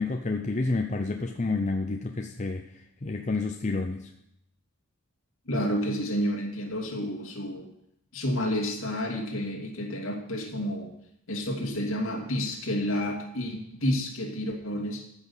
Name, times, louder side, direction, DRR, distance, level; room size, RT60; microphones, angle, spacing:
voice 1, 0.0-2.6 3.0-4.1, left 3 dB, 30° left, 4 dB, 0.6 m, -29 dB
voice 2, 5.5-7.7 8.1-10.9 11.3-15.1, equal, 60° left, 1 dB, 2.6 m, -30 dB
14.0 x 6.3 x 7.3 m, 0.79 s
head